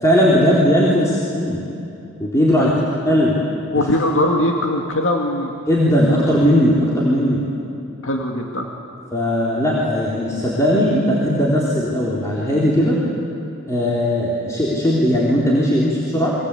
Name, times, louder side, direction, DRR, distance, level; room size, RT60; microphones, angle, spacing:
voice 1, 0.0-1.6 2.2-2.7 3.1-3.4 5.7-7.5 9.1-13.0 13.7-16.4, equal, 15° left, -6 dB, 3.7 m, -18 dB
voice 2, 3.7-5.5 6.0-6.2 8.0-8.7, left 1 dB, 65° left, 1 dB, 2.2 m, -21 dB
30.0 x 23.5 x 8.4 m, 2.8 s
head